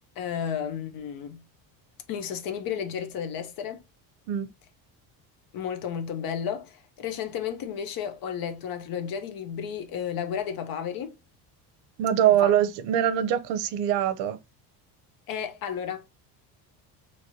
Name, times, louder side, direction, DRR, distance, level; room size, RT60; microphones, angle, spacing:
voice 1, 0.2-1.4 2.1-3.8 5.5-11.1 12.2-12.5 15.3-16.1, left 8 dB, 55° left, 0.8 m, -33 dB
voice 2, 12.0-14.4, right 10 dB, 75° right, 0.6 m, -23 dB
3.0 x 3.0 x 2.6 m
cardioid pair, 135°, 42 cm